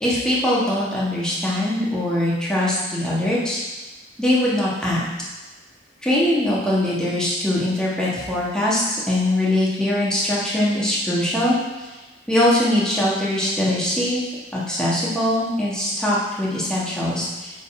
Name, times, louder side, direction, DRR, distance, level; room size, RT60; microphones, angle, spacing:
voice 1, 0.0-3.6 4.2-5.0 6.0-11.6 12.3-14.2 14.5-17.5, left 1 dB, 5° left, -7 dB, 1.5 m, -22 dB
7.2 x 4.1 x 4.3 m, 1.2 s
head